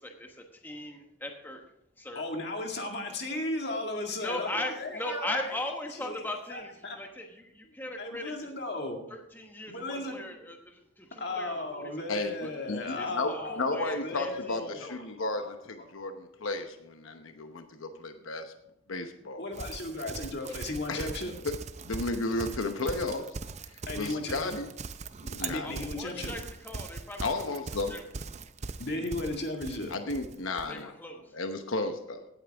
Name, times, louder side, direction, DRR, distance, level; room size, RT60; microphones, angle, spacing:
voice 1, 0.0-1.6 2.0-2.2 4.2-8.5 9.1-12.3 13.0-15.0 25.6-27.6 27.9-28.0 30.7-31.2, left 1 dB, 10° left, 3 dB, 1.1 m, -39 dB
voice 2, 2.2-5.5 6.0-6.2 6.5-7.0 7.7-9.0 9.7-10.2 11.2-14.9 15.4-15.5 15.8-15.9 19.4-21.3 23.9-24.6 25.4-26.4 28.8-29.9, left 2 dB, 55° left, 2 dB, 2.1 m, -35 dB
voice 3, 12.7-18.5 18.9-19.4 20.9-21.2 21.8-23.2 23.7-24.7 25.2-25.7 27.2-27.9 29.9-30.9 31.3-32.3, left 2 dB, 85° left, 7 dB, 1.0 m, -33 dB
Livestock farm animals working animals, 19.5-30.7, right 4 dB, 35° right, 0.5 m, -41 dB
16.5 x 9.0 x 3.5 m, 0.79 s
head